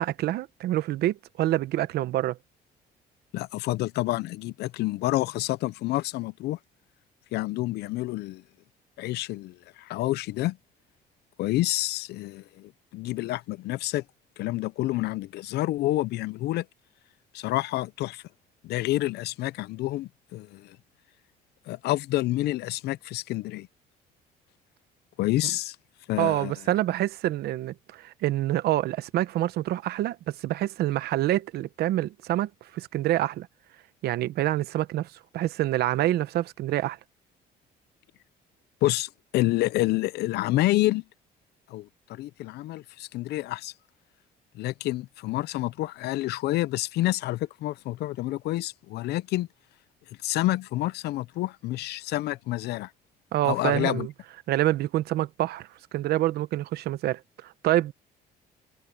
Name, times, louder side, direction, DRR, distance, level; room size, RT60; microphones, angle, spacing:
voice 1, 0.0-2.4 26.2-33.5 34.0-37.0 53.3-54.1 54.5-55.7 55.9-57.9, right 14 dB, 70° right, 1.0 m, -27 dB
voice 2, 3.3-6.6 7.3-8.4 9.0-10.6 11.4-14.0 14.4-16.7 17.3-18.2 18.6-20.8 21.7-23.7 25.2-25.8 26.1-26.5 38.8-41.0 41.7-43.7 44.5-49.5 50.2-52.9 53.4-54.1, left 17 dB, 75° left, 0.6 m, -28 dB
cardioid pair, 110°, 17 cm